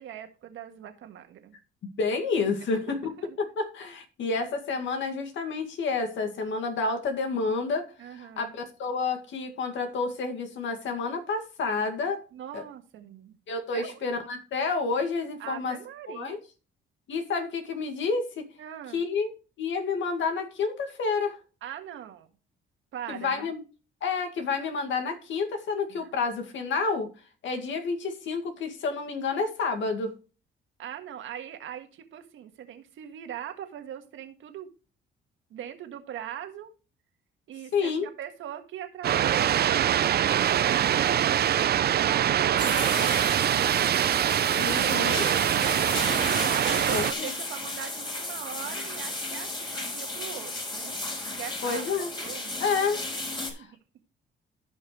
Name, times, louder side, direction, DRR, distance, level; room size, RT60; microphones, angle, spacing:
voice 1, 0.0-1.6 2.9-3.4 8.0-8.5 12.3-13.4 13.7-14.0 15.4-16.4 18.6-19.0 21.6-22.3 22.9-23.5 25.9-26.1 30.8-34.7 35.5-36.7 37.5-44.2 44.8-45.8 46.5-50.9 51.4-51.8 52.2-52.8 53.2-53.7, right 10 dB, 80° right, 6 dB, 1.7 m, -41 dB
voice 2, 2.0-3.1 3.6-7.9 8.2-12.2 12.5-12.6 13.5-15.8 16.1-16.4 17.1-18.5 18.9-19.3 19.6-21.4 23.1-23.6 24.0-27.1 27.4-30.1 37.7-38.1 44.6-45.3 46.9-47.3 51.6-52.1 52.6-53.0 53.5-53.7, left 4 dB, 70° left, 5 dB, 2.1 m, -29 dB
sound 1, 39.0-47.1, right 10 dB, 55° right, 0.6 m, -24 dB
sound 2, 42.6-53.5, left 2 dB, 25° left, 4.1 m, -34 dB
15.0 x 5.5 x 3.1 m, 0.35 s
cardioid pair, 90°, 20 cm